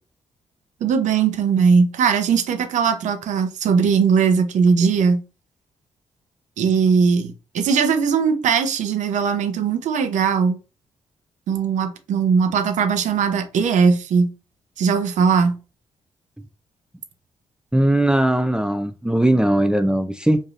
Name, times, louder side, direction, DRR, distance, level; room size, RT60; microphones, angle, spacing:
voice 1, 0.8-5.2 6.6-10.6 11.5-14.3 14.8-15.6, right 6 dB, 75° right, 0.7 m, -19 dB
voice 2, 17.7-20.4, right 1 dB, 5° right, 0.5 m, -19 dB
5.0 x 2.7 x 2.5 m
hypercardioid pair, 45°, 13 cm